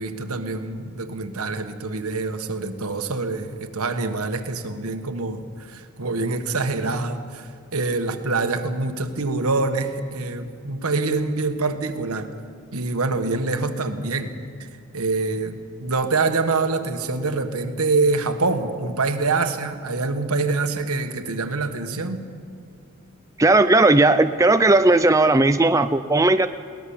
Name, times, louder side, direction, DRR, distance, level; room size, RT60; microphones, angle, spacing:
voice 1, 0.0-12.3 12.7-14.3 14.6-14.7 14.9-22.2, right 3 dB, 85° right, 7 dB, 1.5 m, -25 dB
voice 2, 23.4-26.5, right 2 dB, 15° right, 9 dB, 0.4 m, -16 dB
22.0 x 18.5 x 7.2 m, 2.3 s
head